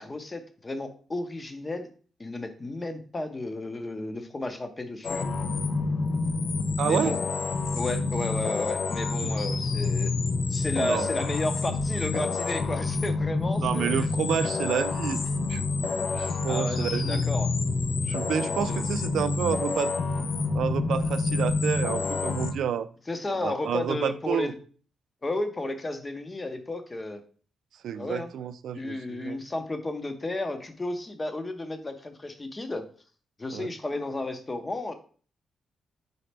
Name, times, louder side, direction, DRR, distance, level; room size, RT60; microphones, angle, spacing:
voice 1, 0.0-1.9 2.2-5.3 6.8-7.2 7.7-10.1 10.5-14.1 16.5-17.5 18.4-18.9 23.1-24.6 25.2-27.2 27.9-28.3 28.7-32.8 33.4-34.9, left 2 dB, 20° left, 0.6 m, -33 dB
sound 1, 5.0-22.5, left 3 dB, 60° left, 0.5 m, -28 dB
voice 2, 6.8-7.2 9.2-9.3 10.7-11.1 13.6-15.2 15.5-15.6 16.1-17.2 18.0-19.9 20.5-22.9 23.4-24.5 27.8-29.4 33.5-33.7, right 8 dB, 80° right, 0.3 m, -29 dB
4.1 x 3.8 x 3.3 m
cardioid pair, 115°, 0 cm